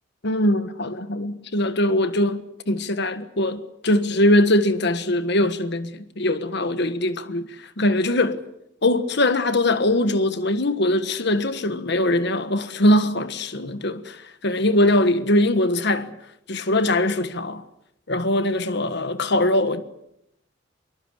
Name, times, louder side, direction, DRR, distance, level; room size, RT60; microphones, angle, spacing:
voice 1, 0.2-7.5 7.8-8.4 8.8-16.1 16.5-17.6 18.1-19.8, left 1 dB, 60° left, 1.5 m, -21 dB
25.0 x 23.0 x 8.2 m
head